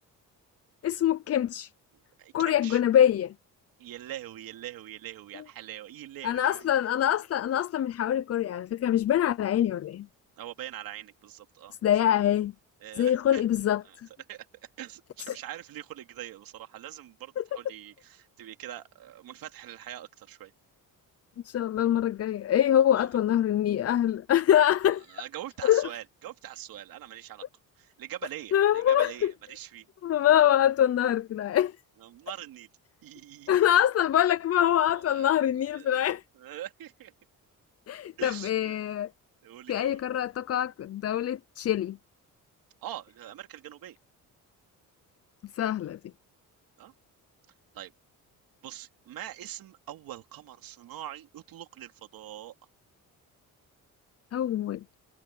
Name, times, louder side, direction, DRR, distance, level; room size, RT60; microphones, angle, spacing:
voice 1, 0.8-1.7 2.3-3.3 6.2-10.1 11.8-12.5 13.0-13.8 15.3-15.4 17.4-17.5 21.4-25.2 25.6-25.9 28.5-29.3 30.0-31.8 33.5-36.2 37.9-39.1 39.7-42.0 45.5-46.0 54.3-54.8, left 11 dB, 45° left, 0.6 m, -24 dB
voice 2, 2.2-2.8 3.8-6.7 10.4-11.7 12.8-13.4 13.8-14.0 14.3-20.5 22.9-23.1 25.1-27.5 27.8-29.9 32.0-32.7 33.0-33.6 34.9-35.4 35.7-36.0 36.4-37.1 38.2-38.8 39.4-40.1 42.8-44.0 46.8-46.9 47.7-47.9 48.6-52.5, right 12 dB, 80° right, 2.7 m, -43 dB
cardioid pair, 125°, 35 cm